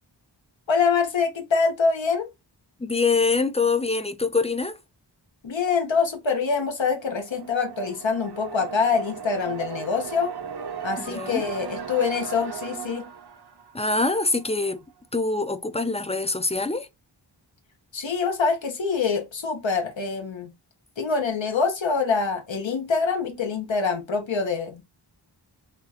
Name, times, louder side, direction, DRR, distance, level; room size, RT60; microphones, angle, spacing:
voice 1, 0.7-2.3 5.4-10.3 10.8-13.1 17.9-20.5 21.0-24.8, left 5 dB, 80° left, 0.9 m, -25 dB
voice 2, 2.8-4.8 11.0-11.4 13.7-14.8 15.1-16.9, left 3 dB, 15° left, 0.4 m, -24 dB
sound 1, 6.8-14.6, right 7 dB, 60° right, 0.6 m, -37 dB
3.5 x 2.4 x 2.7 m
wide cardioid pair, 65°, 45 cm